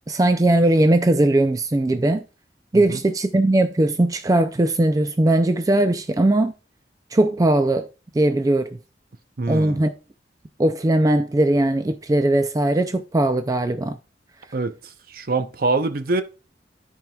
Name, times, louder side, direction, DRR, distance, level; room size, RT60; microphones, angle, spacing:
voice 1, 0.1-2.2 2.7-6.5 7.1-7.9 8.1-8.7 9.5-9.9 10.6-14.0, right 1 dB, 20° right, 0.4 m, -19 dB
voice 2, 9.4-9.9 14.5-16.2, right 3 dB, 55° right, 0.7 m, -25 dB
13.5 x 4.6 x 2.3 m
head